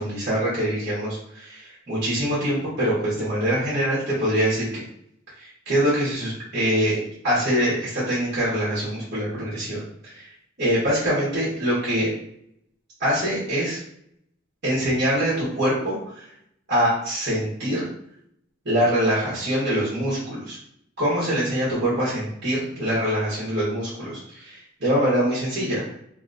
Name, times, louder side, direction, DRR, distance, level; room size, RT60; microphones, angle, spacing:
voice 1, 0.0-4.8 5.4-10.3 10.6-12.1 13.0-13.8 14.6-16.2 16.7-17.8 18.6-20.6 21.0-25.8, equal, 55° right, -8 dB, 1.4 m, -24 dB
2.9 x 2.9 x 2.5 m, 0.72 s
head